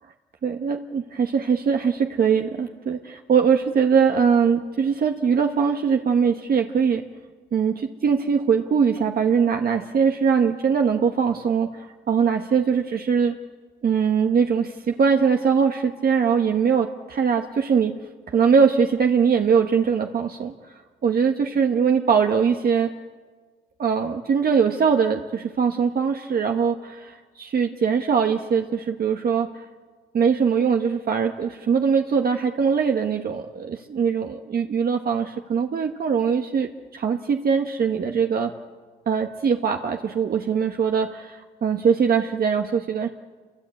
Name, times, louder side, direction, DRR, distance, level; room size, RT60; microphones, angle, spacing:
voice 1, 0.4-7.0 7.5-13.3 13.8-17.9 18.3-20.5 21.0-22.9 23.8-29.6 30.1-38.5 39.1-43.1, right 6 dB, 50° right, 4 dB, 1.3 m, -21 dB
28.5 x 23.5 x 8.4 m, 1.5 s
cardioid pair, 90°, 20 cm